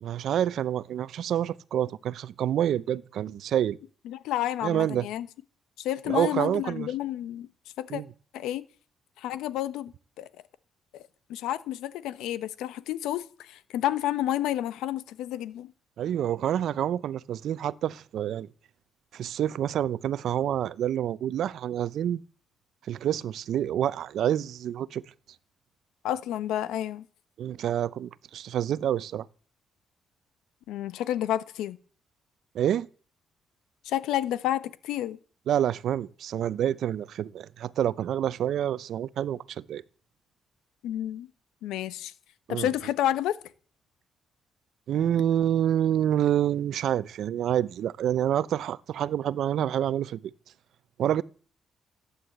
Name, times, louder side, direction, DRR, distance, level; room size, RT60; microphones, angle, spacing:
voice 1, 0.0-3.8 4.6-5.1 6.1-6.9 7.9-8.1 16.0-18.5 19.1-22.2 22.9-25.0 27.4-29.3 32.5-32.9 35.5-39.8 42.5-42.7 44.9-50.2 51.0-51.2, right 10 dB, 70° right, 0.7 m, -27 dB
voice 2, 4.0-5.3 5.8-7.5 7.8-8.0 8.3-8.6 9.2-10.3 10.9-11.0 11.3-15.7 26.0-27.0 30.7-31.8 33.8-35.2 40.8-41.3 41.6-42.1 42.5-43.4, left 12 dB, 90° left, 1.1 m, -30 dB
16.0 x 9.8 x 7.9 m
cardioid pair, 90°, 0 cm